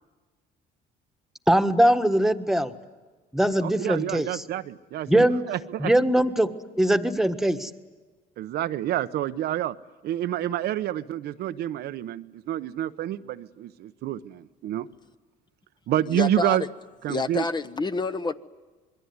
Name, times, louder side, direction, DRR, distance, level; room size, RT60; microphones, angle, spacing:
voice 1, 1.5-2.7 3.3-4.3 5.1-5.4 5.8-6.5 6.8-7.7, right 1 dB, ahead, 8 dB, 1.5 m, -21 dB
voice 2, 3.6-5.9 8.4-9.8 10.0-14.9 15.9-16.6 17.0-17.5, right 12 dB, 70° right, 11 dB, 0.9 m, -28 dB
voice 3, 16.1-16.6 17.1-18.3, left 3 dB, 25° left, 11 dB, 1.0 m, -28 dB
26.5 x 22.0 x 9.6 m, 1.3 s
cardioid pair, 110°, 17 cm